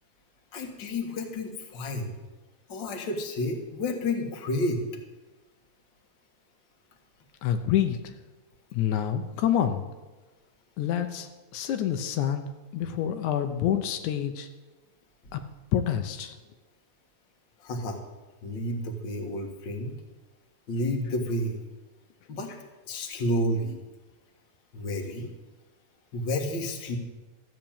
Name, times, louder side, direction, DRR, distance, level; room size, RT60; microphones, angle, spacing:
voice 1, 0.5-2.2 2.7-4.8 17.6-18.0 18.4-19.9 20.7-21.6 22.3-23.8 24.7-25.3 26.1-27.0, left 1 dB, 45° left, 3 dB, 2.1 m, -30 dB
voice 2, 7.4-8.1 8.7-9.9 10.8-12.5 12.7-14.5 15.3-15.4 15.7-16.3, left 10 dB, 80° left, 7 dB, 2.2 m, -27 dB
13.5 x 7.6 x 8.7 m, 1.2 s
omnidirectional pair, 3.4 m